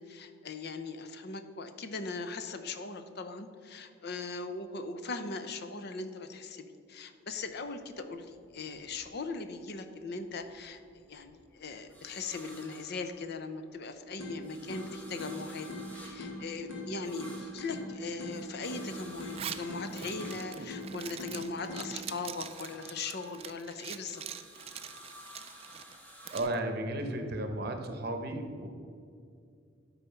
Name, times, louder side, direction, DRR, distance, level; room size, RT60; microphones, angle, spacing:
voice 1, 0.0-15.7 15.9-24.2, left 3 dB, 55° left, 8 dB, 0.6 m, -40 dB
sound 1, 7.3-9.7 10.1-13.7 14.1-21.5 21.9-26.4, equal, 5° left, 1.5 m, -53 dB
sound 2, 14.2-22.2, left 1 dB, 70° left, 2.0 m, -42 dB
Zipper (clothing), 19.2-26.6, right 8 dB, 30° right, 0.3 m, -44 dB
voice 2, 26.3-28.7, right 1 dB, 50° right, 6 dB, 0.9 m, -34 dB
12.0 x 4.2 x 5.6 m, 2.3 s
head